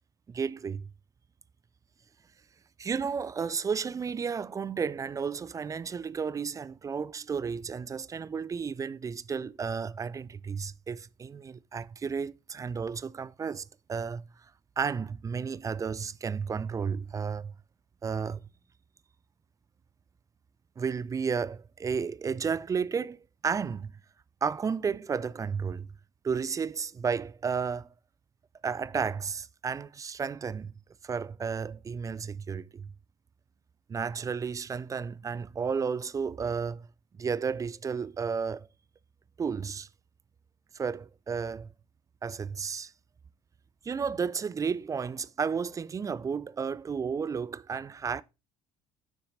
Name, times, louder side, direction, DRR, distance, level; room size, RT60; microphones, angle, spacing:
voice 1, 0.3-0.9 2.8-14.2 14.8-17.5 18.0-18.5 20.8-23.9 24.4-25.9 26.2-27.9 28.6-30.7 31.0-32.9 33.9-36.9 37.2-38.7 39.4-39.9 40.7-41.7 42.2-42.9 43.8-48.2, right 6 dB, 20° right, 0.4 m, -32 dB
6.9 x 6.4 x 3.9 m
figure-of-eight pair, 60°, 18 cm